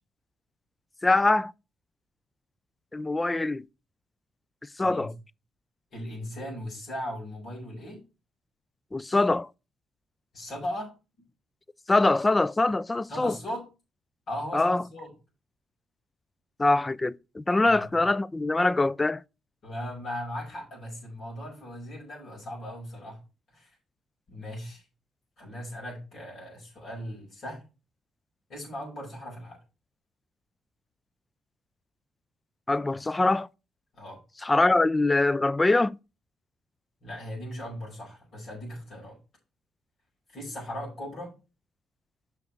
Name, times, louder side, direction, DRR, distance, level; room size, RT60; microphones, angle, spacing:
voice 1, 1.0-1.5 2.9-3.6 4.8-5.1 8.9-9.5 11.9-13.3 14.5-14.8 16.6-19.2 32.7-33.5 34.4-36.0, left 2 dB, 20° left, 0.3 m, -23 dB
voice 2, 4.8-5.1 5.9-8.0 10.3-10.9 13.1-13.6 14.3-15.1 17.6-18.0 19.6-23.2 23.5-23.7 24.3-24.8 25.4-27.6 28.5-29.6 33.9-34.2 37.0-39.2 40.3-41.3, equal, 60° left, 5.0 m, -38 dB
6.1 x 5.8 x 5.2 m
cardioid pair, 90°, 0 cm